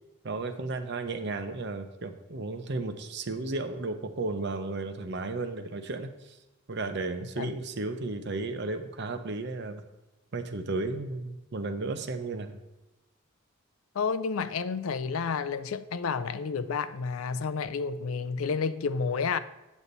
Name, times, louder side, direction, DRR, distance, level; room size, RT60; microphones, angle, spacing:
voice 1, 0.2-6.4 6.7-9.8 10.3-12.6, right 3 dB, 55° right, 0.7 m, -34 dB
voice 2, 13.9-19.4, left 5 dB, 85° left, 0.5 m, -30 dB
8.3 x 7.1 x 4.0 m
head